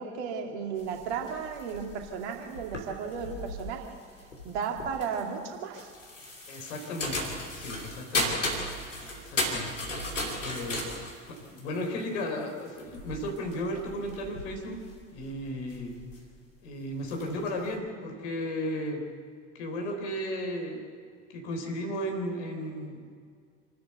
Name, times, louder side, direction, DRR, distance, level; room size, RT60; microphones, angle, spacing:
voice 1, 0.0-4.0 4.4-5.9, right 6 dB, 65° right, 3 dB, 2.6 m, -34 dB
sound 1, 0.8-16.3 16.9-17.8, left 1 dB, 85° left, 2.8 m, -36 dB
voice 2, 6.5-8.4 9.2-9.7 10.4-10.8 11.3-14.8 15.1-15.9 16.6-19.0 19.5-20.8 21.3-23.2, equal, 70° left, 3 dB, 3.7 m, -35 dB
27.0 x 13.0 x 8.1 m, 2.1 s
figure-of-eight pair, 60°, 36 cm